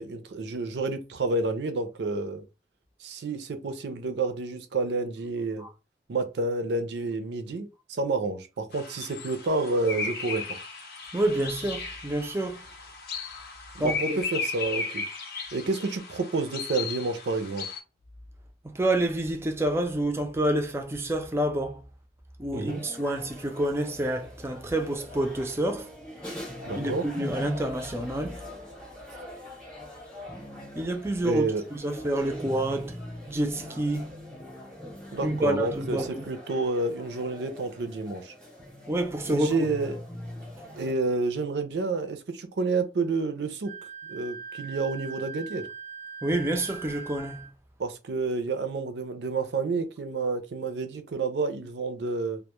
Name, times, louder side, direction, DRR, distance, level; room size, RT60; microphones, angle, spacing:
voice 1, 0.0-2.4 3.0-5.7 6.1-10.4 13.7-15.0 15.5-17.7 22.5-22.8 26.7-27.0 31.2-31.6 35.1-38.3 39.3-40.0 40.7-43.7 44.1-45.7 47.8-52.4, right 3 dB, 80° right, 0.4 m, -29 dB
sound 1, 8.7-17.8, left 4 dB, 60° left, 0.5 m, -36 dB
voice 2, 11.1-12.6 13.8-14.2 18.6-21.8 22.4-25.9 26.8-28.4 30.8-33.0 33.3-34.1 35.2-36.3 38.9-39.5 46.2-47.5, right 1 dB, 15° right, 0.3 m, -28 dB
sound 2, 22.7-40.9, left 1 dB, 5° left, 0.7 m, -42 dB
Wind instrument woodwind instrument, 43.6-47.5, right 6 dB, 90° left, 0.9 m, -41 dB
2.2 x 2.0 x 2.9 m
head